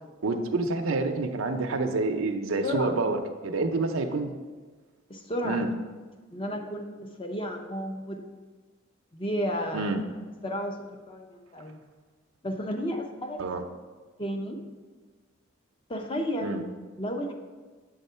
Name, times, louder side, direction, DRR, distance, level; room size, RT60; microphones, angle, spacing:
voice 1, 0.2-4.3 5.4-5.7 9.7-10.0 13.4-13.6 16.4-16.6, right 3 dB, 80° right, 5 dB, 0.6 m, -28 dB
voice 2, 2.6-3.0 5.1-5.7 6.3-8.2 9.1-9.9 10.4-11.8 12.4-13.4 14.2-14.6 15.9-16.6 17.0-17.3, equal, 25° left, 4 dB, 0.6 m, -32 dB
7.1 x 3.7 x 5.5 m, 1.4 s
head